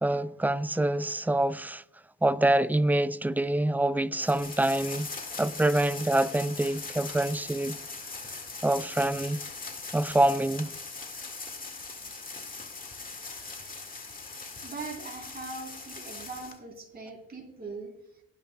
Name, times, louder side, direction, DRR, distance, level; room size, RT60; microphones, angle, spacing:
voice 1, 0.0-1.8 2.2-5.1 5.4-7.7 8.6-9.4 9.9-10.7, right 1 dB, 5° right, 0.4 m, -26 dB
sound 1, 4.2-16.6, left 4 dB, 30° left, 1.9 m, -41 dB
voice 2, 14.6-17.9, right 3 dB, 30° right, 3.6 m, -41 dB
18.5 x 10.5 x 2.3 m
cardioid pair, 90°, 30 cm